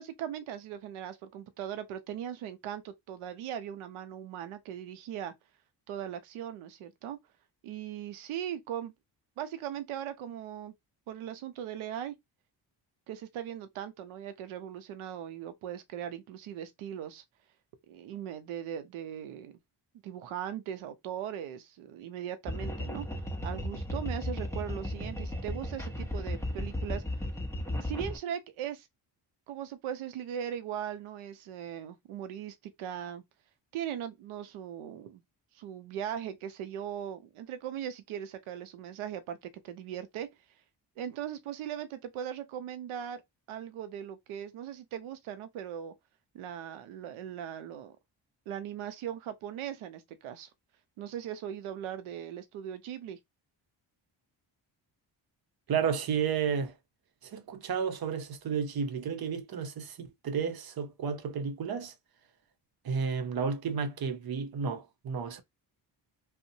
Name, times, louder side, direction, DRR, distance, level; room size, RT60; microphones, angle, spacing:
voice 1, 0.0-5.3 5.9-7.2 7.6-8.9 9.4-10.7 11.1-12.1 13.1-17.2 17.9-19.6 20.0-23.1 23.4-27.3 27.8-28.9 29.5-33.2 33.7-35.2 35.5-40.3 41.0-43.2 43.5-45.9 46.3-47.9 48.5-50.5 51.0-53.2, right 10 dB, 85° right, 0.6 m, -39 dB
sound 1, 22.5-28.2, left 1 dB, 5° left, 0.8 m, -35 dB
voice 2, 55.7-56.7 57.2-61.9 62.8-65.4, right 6 dB, 50° right, 0.7 m, -32 dB
2.6 x 2.1 x 2.6 m
supercardioid pair, 55°, 48 cm